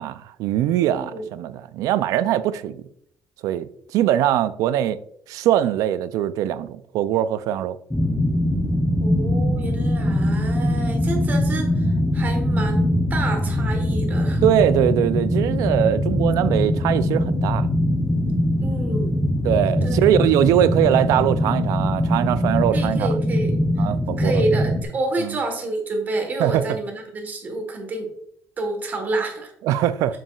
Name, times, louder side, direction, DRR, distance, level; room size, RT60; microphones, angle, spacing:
voice 1, 0.0-2.8 3.4-5.0 5.3-7.8 14.4-17.7 19.4-23.1 23.8-24.4 25.2-25.4 26.4-26.6 29.6-30.2, right 11 dB, 80° right, 0.4 m, -21 dB
voice 2, 0.9-1.3 9.0-14.4 18.6-19.2 19.8-20.2 22.7-23.9 24.2-28.1 28.6-29.5, right 2 dB, 30° right, 1.4 m, -29 dB
sound 1, 7.9-24.8, left 1 dB, 5° left, 0.6 m, -22 dB
6.9 x 5.9 x 2.4 m
cardioid pair, 155°, 6 cm